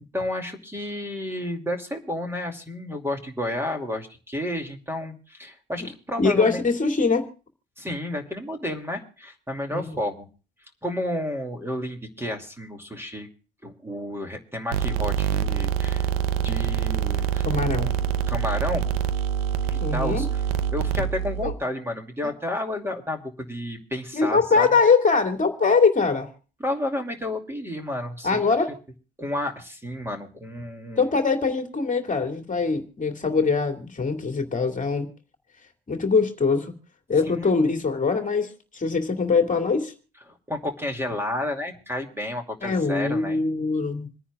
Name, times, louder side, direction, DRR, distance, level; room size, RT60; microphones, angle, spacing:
voice 1, 0.1-6.6 7.8-10.3 10.8-13.3 13.6-16.1 16.4-17.5 18.3-18.9 19.7-20.4 20.7-24.7 26.6-28.4 29.2-31.2 37.2-37.5 40.3-43.4, left 1 dB, 10° right, 4 dB, 2.6 m, -31 dB
voice 2, 6.2-7.3 9.7-10.0 17.4-17.9 19.8-20.3 21.4-21.5 24.1-26.3 28.2-28.7 31.0-35.1 35.9-36.7 37.1-39.9 42.6-44.1, left 4 dB, 25° left, 5 dB, 2.4 m, -22 dB
sound 1, 14.7-21.5, right 8 dB, 80° right, 0.9 m, -25 dB
27.5 x 9.9 x 2.4 m, 0.36 s
hypercardioid pair, 75°, 30 cm